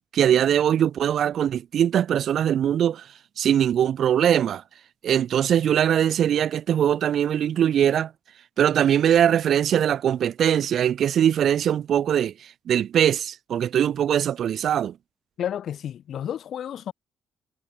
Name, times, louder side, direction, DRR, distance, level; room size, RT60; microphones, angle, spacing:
voice 1, 0.0-3.1 3.4-4.6 5.0-8.1 8.6-15.0, right 9 dB, 65° right, 1.3 m, -21 dB
voice 2, 15.4-16.9, left 10 dB, 65° left, 1.0 m, -31 dB
cardioid pair, 90°, 0 cm